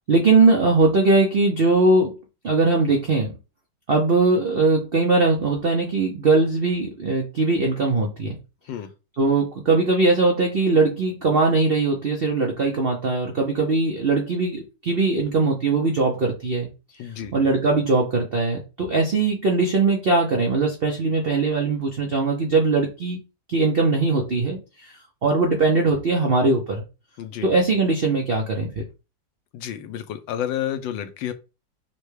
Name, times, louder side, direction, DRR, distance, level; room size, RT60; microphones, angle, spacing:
voice 1, 0.1-2.2 2.4-3.4 3.9-8.4 9.2-16.7 17.3-23.2 23.5-24.9 25.2-26.8 27.4-28.8, right 3 dB, 80° right, 0.5 m, -20 dB
voice 2, 17.0-17.3 27.2-27.5 29.5-31.3, left 10 dB, 85° left, 1.3 m, -30 dB
5.6 x 2.2 x 3.2 m
omnidirectional pair, 2.0 m